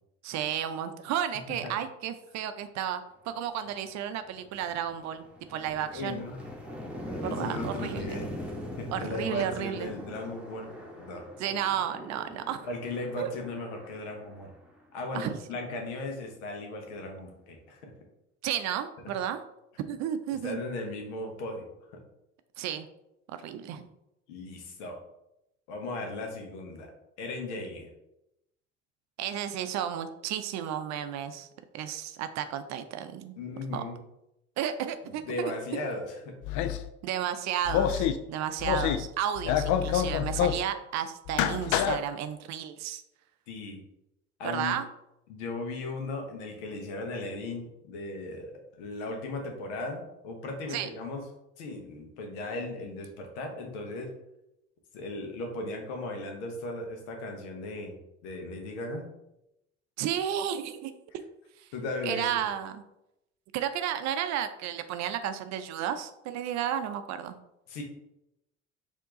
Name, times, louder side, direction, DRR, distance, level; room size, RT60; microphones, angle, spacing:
voice 1, 0.2-6.2 7.2-8.2 8.9-9.9 11.4-12.7 13.2-13.3 15.1-15.4 18.4-19.4 19.9-20.6 22.6-22.9 23.3-23.9 29.2-31.5 31.7-33.4 33.7-33.8 34.6-35.5 37.0-43.0 44.4-44.9 50.7-50.9 60.0-61.2 61.6-61.7 62.0-62.8 63.5-67.4, right 10 dB, 50° right, 10 dB, 0.5 m, -33 dB
sound 1, 3.7-3.8 4.3-15.0, left 1 dB, 5° right, 1.2 m, -41 dB
voice 2, 5.9-6.4 7.1-8.3 8.8-11.2 12.6-14.5 14.9-17.9 20.4-22.0 24.3-25.0 25.7-26.9 27.2-27.9 33.4-34.0 35.0-36.3 43.5-43.8 44.4-44.8 45.3-51.2 51.6-54.1 54.9-58.0 58.2-59.1 61.7-62.5 67.7-67.8, left 2 dB, 75° left, 3 dB, 1.1 m, -37 dB
sound 2, 36.4-36.9 37.6-38.2 38.6-39.1 39.4-40.6 41.3-42.0, left 10 dB, 60° left, 0.5 m, -27 dB
4.5 x 2.9 x 3.7 m, 0.85 s
hypercardioid pair, 55°, 35 cm